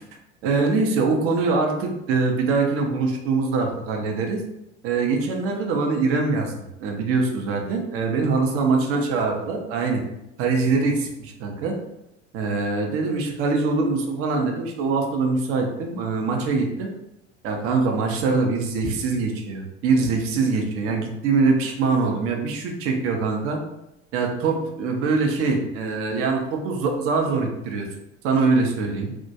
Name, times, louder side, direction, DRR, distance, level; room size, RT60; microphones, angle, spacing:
voice 1, 0.4-4.4 4.8-10.0 10.4-11.8 12.3-16.9 17.4-23.6 24.1-27.9 28.2-29.1, right 4 dB, 40° right, 2 dB, 0.5 m, -23 dB
2.3 x 2.1 x 2.6 m, 0.86 s
figure-of-eight pair, 65°, 35 cm